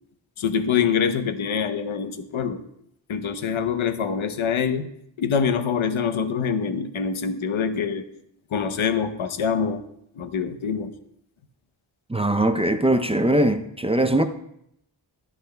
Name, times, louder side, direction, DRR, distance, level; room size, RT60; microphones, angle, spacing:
voice 1, 0.4-2.6 3.1-4.9 5.2-8.0 8.5-9.8 10.2-10.9, left 6 dB, 85° left, 0.8 m, -25 dB
voice 2, 12.1-14.3, right 1 dB, 15° right, 0.4 m, -21 dB
13.0 x 12.0 x 2.2 m
wide cardioid pair, 100°, 47 cm